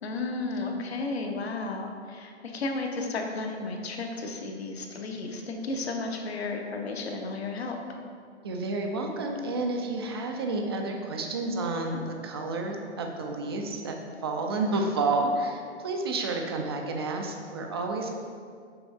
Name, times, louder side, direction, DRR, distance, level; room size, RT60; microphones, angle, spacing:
voice 1, 0.0-7.8, left 3 dB, 60° left, 3 dB, 0.9 m, -33 dB
voice 2, 8.4-14.0 14.2-18.1, right 2 dB, 25° right, 3 dB, 0.4 m, -30 dB
7.0 x 3.9 x 3.5 m, 2.1 s
figure-of-eight pair, 125°, 35 cm